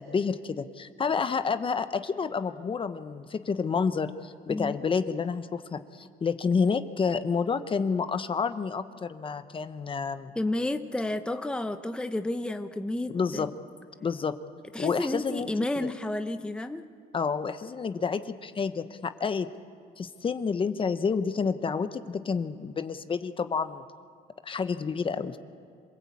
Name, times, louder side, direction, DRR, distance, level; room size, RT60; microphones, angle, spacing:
voice 1, 0.0-10.3 13.1-13.5 14.0-14.4 14.8-15.9 17.1-19.5 20.0-23.8 24.4-25.4, left 5 dB, 30° left, 10 dB, 1.0 m, -29 dB
voice 2, 10.4-13.5 14.7-16.8, left 1 dB, 5° left, 8 dB, 0.9 m, -31 dB
26.5 x 19.0 x 8.5 m, 2.3 s
cardioid pair, 110°, 17 cm